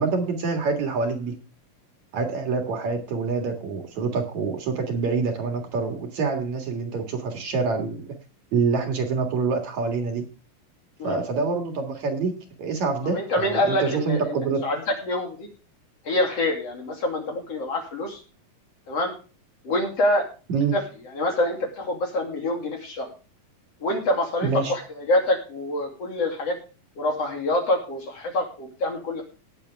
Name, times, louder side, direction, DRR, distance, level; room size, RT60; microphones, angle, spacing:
voice 1, 0.0-1.4 2.1-8.1 8.5-10.3 11.0-12.3 12.6-14.6 20.5-20.8 24.4-24.7, right 4 dB, 60° right, 4 dB, 3.0 m, -26 dB
voice 2, 13.1-14.4 14.6-15.5 16.1-18.2 18.9-19.1 19.6-20.2 20.7-20.8 21.1-23.1 23.8-26.6 27.0-29.2, left 1 dB, 45° left, 2 dB, 3.6 m, -26 dB
18.5 x 7.7 x 3.4 m, 0.34 s
omnidirectional pair, 4.0 m